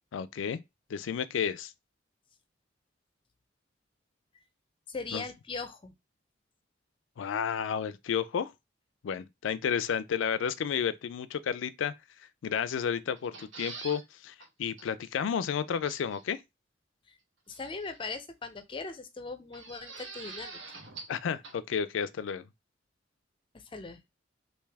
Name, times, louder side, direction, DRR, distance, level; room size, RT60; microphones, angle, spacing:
voice 1, 0.1-0.6 0.9-1.7 5.1-5.2 7.2-8.5 9.0-11.9 12.4-14.3 14.6-16.4 21.1-22.5, left 7 dB, 90° left, 0.4 m, -31 dB
voice 2, 4.9-5.9 17.1-17.2 17.5-20.8 23.5-24.0, left 4 dB, 25° left, 0.5 m, -40 dB
sound 1, 13.2-14.0 14.4-14.5 14.8-14.9 15.8-16.2 17.5-18.1 19.5-21.2 21.4-21.5, right 4 dB, 90° right, 1.0 m, -45 dB
3.3 x 2.7 x 3.4 m
head